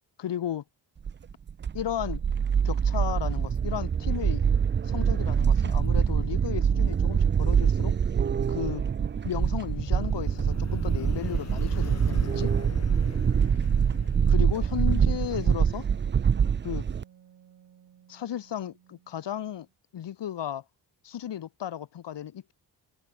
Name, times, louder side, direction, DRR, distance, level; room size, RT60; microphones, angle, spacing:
voice 1, 0.2-0.6 1.7-2.2 2.6-4.4 4.8-8.0 8.5-8.8 9.2-12.5 14.3-15.9 16.6-16.9 18.1-19.7 19.9-20.6 21.0-22.5, left 10 dB, 80° left, 2.4 m, -34 dB
sound 1, 1.1-17.0, right 7 dB, 30° right, 0.4 m, -25 dB
sound 2, 9.3-15.0, left 8 dB, 40° left, 1.0 m, -42 dB
Wind instrument woodwind instrument, 14.3-19.7, right 9 dB, 75° right, 5.8 m, -55 dB
open air
wide cardioid pair, 170°, 42 cm